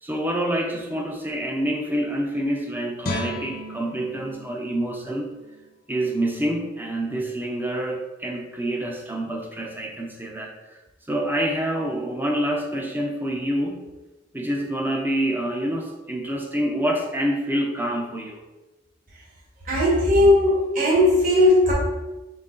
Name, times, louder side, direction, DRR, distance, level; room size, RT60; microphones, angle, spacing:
voice 1, 0.0-5.3 5.9-10.8 11.1-13.9 14.3-18.4, right 1 dB, 10° right, 1 dB, 0.4 m, -27 dB
Guitar, 3.0-6.2 6.6-6.7, left 2 dB, 45° left, 0.6 m, -36 dB
voice 2, 19.7-21.7, left 1 dB, 45° right, -5 dB, 1.2 m, -17 dB
4.0 x 3.5 x 3.7 m, 1.1 s
head